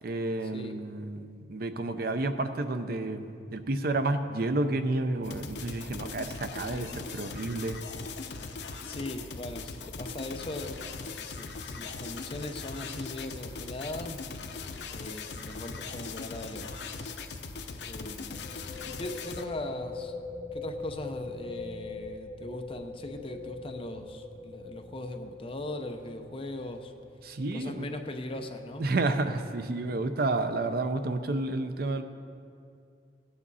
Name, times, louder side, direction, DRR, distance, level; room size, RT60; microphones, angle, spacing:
voice 1, 0.0-7.8 27.2-27.9 28.8-32.0, right 2 dB, 60° right, 9 dB, 0.6 m, -30 dB
sound 1, 5.2-19.4, left 4 dB, 75° left, 0.8 m, -40 dB
voice 2, 6.6-6.9 8.5-14.2 14.9-16.7 17.8-18.4 18.9-20.1 20.5-26.9 27.5-28.9, left 1 dB, 30° left, 5 dB, 0.7 m, -39 dB
sound 2, 15.4-15.5 15.7-15.8 18.3-29.6, left 3 dB, 25° right, 2.2 m, -43 dB
16.5 x 8.7 x 4.1 m, 2.4 s
head